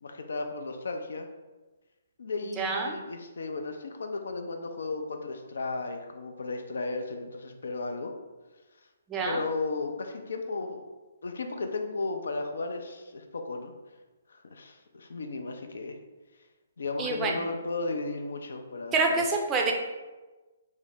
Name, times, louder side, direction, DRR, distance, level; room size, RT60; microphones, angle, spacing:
voice 1, 0.0-1.3 2.2-8.1 9.2-10.8 11.2-13.7 14.3-16.0 16.8-19.3, left 3 dB, 70° left, 5 dB, 0.4 m, -34 dB
voice 2, 2.6-3.0 9.1-9.4 17.0-17.3 18.9-19.7, right 3 dB, 20° right, 1 dB, 0.5 m, -27 dB
3.6 x 2.0 x 3.4 m, 1.2 s
figure-of-eight pair, 135°, 0 cm